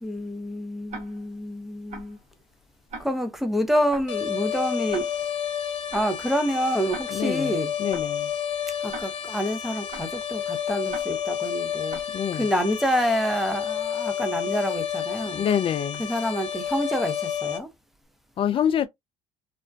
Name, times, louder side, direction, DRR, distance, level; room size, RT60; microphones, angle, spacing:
voice 1, 0.0-2.2 3.0-5.1 5.9-7.7 8.8-12.0 12.3-15.5 16.0-17.7, equal, ahead, 0.6 m, -27 dB
Tick-tock, 0.9-1.4 1.9-2.2 2.9-3.4 3.9-4.2 4.9-5.4 5.9-6.2 6.9-7.4 7.9-8.2 8.9-9.4 9.9-10.2 10.9-11.4 11.9-12.2, right 3 dB, 55° right, 0.9 m, -41 dB
sound 1, 4.1-17.6, left 9 dB, 90° left, 0.5 m, -30 dB
voice 2, 7.1-7.5 7.8-8.3 12.1-12.4 15.3-16.0 18.4-18.9, left 8 dB, 40° left, 0.4 m, -25 dB
2.4 x 2.1 x 2.4 m
supercardioid pair, 80°, 15 cm